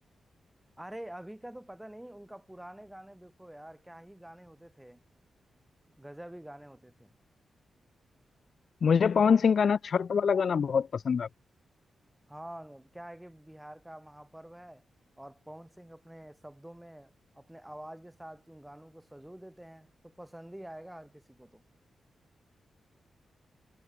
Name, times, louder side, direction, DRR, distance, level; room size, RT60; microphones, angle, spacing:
voice 1, 0.8-5.0 6.0-7.1 12.3-14.8 15.2-21.6, right 1 dB, 10° right, 7.8 m, -47 dB
voice 2, 8.8-11.3, left 6 dB, 65° left, 0.9 m, -24 dB
supercardioid pair, 45°, 0 cm